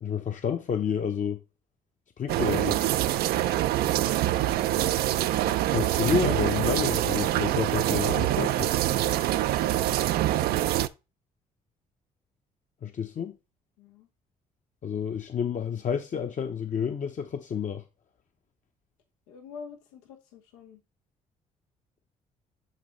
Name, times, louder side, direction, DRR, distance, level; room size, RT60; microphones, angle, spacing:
voice 1, 0.0-1.4 2.2-2.8 5.7-8.8 12.8-13.3 14.8-17.8, left 7 dB, 50° left, 0.9 m, -30 dB
sound 1, 2.3-10.9, right 14 dB, 70° right, 0.5 m, -25 dB
voice 2, 2.4-4.2 13.8-14.1 19.3-20.8, left 6 dB, 90° left, 1.0 m, -48 dB
11.0 x 4.0 x 3.2 m
hypercardioid pair, 55°, 17 cm